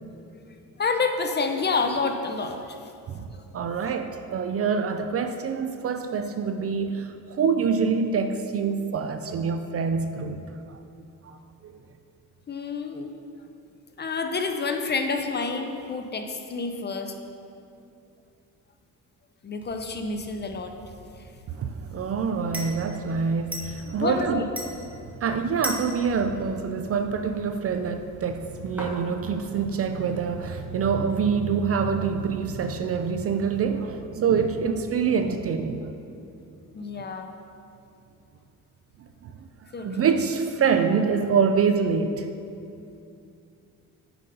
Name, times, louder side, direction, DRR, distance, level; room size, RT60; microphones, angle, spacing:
voice 1, 0.8-2.6 3.3-3.8 12.5-13.1 14.0-17.1 19.4-20.7 24.0-24.4 36.7-37.3 39.7-40.1, left 4 dB, 30° left, 5 dB, 0.6 m, -28 dB
voice 2, 3.5-10.4 10.7-10.8 11.6-11.7 21.6-24.5 25.2-36.2 39.2-39.3 39.8-42.3, right 6 dB, 40° right, 8 dB, 0.4 m, -26 dB
sound 1, 19.6-32.4, equal, 5° right, 1.2 m, -42 dB
8.6 x 4.1 x 5.4 m, 2.6 s
cardioid pair, 110°, 36 cm